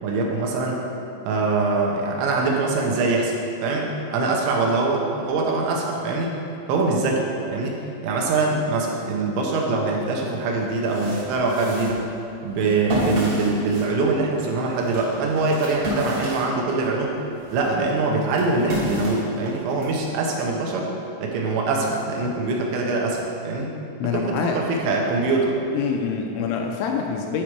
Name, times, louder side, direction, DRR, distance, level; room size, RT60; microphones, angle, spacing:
voice 1, 0.0-0.8 1.3-3.3 3.6-6.3 6.7-7.7 8.0-12.0 12.4-17.1 17.5-20.9 21.2-23.7 24.0-25.6, right 3 dB, 80° right, -1 dB, 3.1 m, -23 dB
sound 1, 10.0-10.1 10.6-17.0 17.4-20.0, equal, 60° right, 1.5 m, -31 dB
voice 2, 24.0-24.7 25.7-27.4, left 6 dB, 85° left, 2 dB, 2.8 m, -26 dB
11.5 x 4.9 x 4.5 m, 2.6 s
omnidirectional pair, 5.5 m